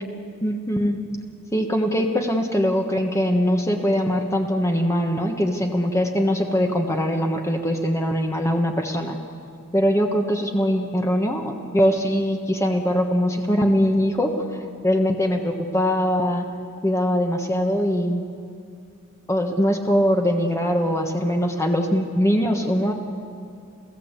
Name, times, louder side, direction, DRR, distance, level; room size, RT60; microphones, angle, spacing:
voice 1, 0.4-1.0 1.5-9.2 9.7-14.3 14.8-16.5 16.8-18.2 19.3-22.9, equal, 15° left, 3 dB, 1.3 m, -22 dB
29.5 x 15.5 x 8.2 m, 2.4 s
head